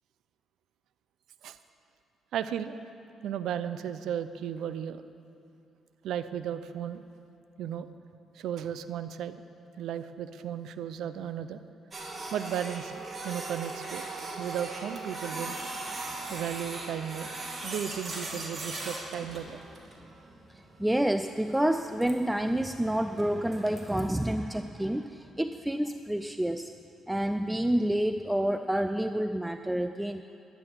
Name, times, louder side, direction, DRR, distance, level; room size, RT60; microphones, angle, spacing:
voice 1, 2.3-2.8 3.2-5.0 6.0-7.0 7.6-7.9 8.3-9.4 9.8-11.6 12.3-14.0 14.4-15.6 16.3-17.4 17.6-19.6, right 9 dB, 80° right, 12 dB, 0.5 m, -35 dB
Printer, 11.9-24.0, right 2 dB, 35° right, 2.1 m, -39 dB
voice 2, 20.5-26.7 27.1-30.2, right 1 dB, 5° right, 9 dB, 0.4 m, -28 dB
11.5 x 10.5 x 6.0 m, 2.6 s
cardioid pair, 90°, 0 cm